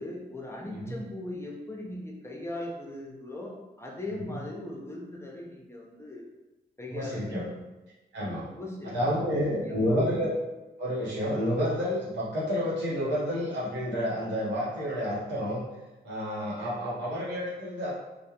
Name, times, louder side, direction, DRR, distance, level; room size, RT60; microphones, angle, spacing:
voice 1, 0.0-6.3 6.8-7.6 8.5-9.2 9.5-10.1, left 1 dB, 15° left, -2 dB, 0.7 m, -39 dB
voice 2, 6.9-7.4 8.1-8.5 8.8-10.3 10.8-15.7 16.0-17.9, equal, 85° right, -7 dB, 0.9 m, -30 dB
2.3 x 2.2 x 2.8 m, 1.0 s
supercardioid pair, 45°, 18 cm